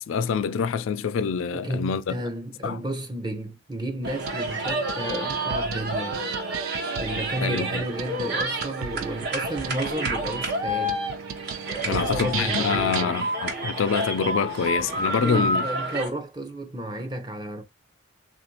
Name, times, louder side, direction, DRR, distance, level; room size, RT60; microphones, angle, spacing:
voice 1, 0.0-2.2 2.6-2.8 7.4-7.8 11.8-15.6, left 6 dB, 70° left, 0.3 m, -26 dB
voice 2, 1.5-6.4 7.0-11.0 11.8-13.2 15.2-17.6, right 1 dB, 20° right, 0.6 m, -32 dB
sound 1, 4.0-16.1, right 1 dB, 50° right, 1.1 m, -29 dB
sound 2, 4.0-13.0, right 7 dB, 85° right, 0.4 m, -35 dB
3.6 x 2.5 x 2.7 m
head